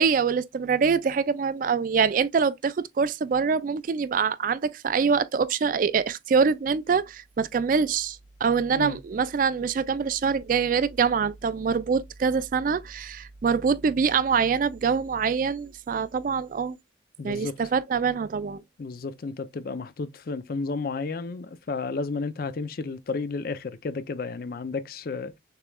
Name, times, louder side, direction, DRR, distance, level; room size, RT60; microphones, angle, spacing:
voice 1, 0.0-16.8 17.2-18.6, right 6 dB, 45° right, 0.3 m, -24 dB
voice 2, 17.2-17.6 18.8-25.4, left 4 dB, 50° left, 0.4 m, -32 dB
6.6 x 3.1 x 2.2 m
head